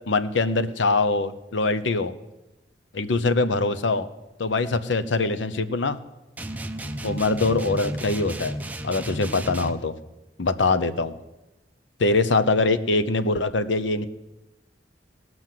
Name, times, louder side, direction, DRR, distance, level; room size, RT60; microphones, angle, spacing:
voice 1, 0.1-2.1 2.9-4.1 4.4-6.0 7.0-8.5 8.8-9.9 10.4-11.1 12.0-14.1, left 3 dB, 85° left, 11 dB, 0.7 m, -23 dB
sound 1, 6.4-9.9, right 1 dB, 10° right, 0.5 m, -33 dB
18.0 x 6.1 x 7.5 m, 1.0 s
head